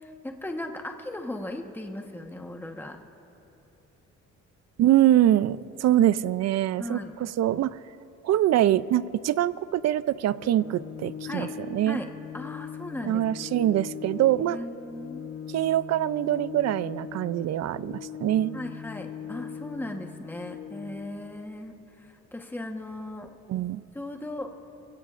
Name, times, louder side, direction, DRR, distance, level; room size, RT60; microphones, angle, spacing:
voice 1, 0.0-3.0 6.8-7.1 11.2-11.5 11.9-12.1 12.3-13.2 14.4-15.2 18.5-23.3 23.9-24.5, left 1 dB, 5° left, 3 dB, 1.2 m, -37 dB
voice 2, 4.8-7.8 8.2-12.0 13.0-14.6 15.5-18.6 23.5-23.8, right 12 dB, 60° right, 17 dB, 0.5 m, -24 dB
Organ, 10.4-21.3, left 7 dB, 60° left, 1.0 m, -40 dB
27.5 x 16.5 x 2.5 m, 2.9 s
cardioid pair, 90°, 30 cm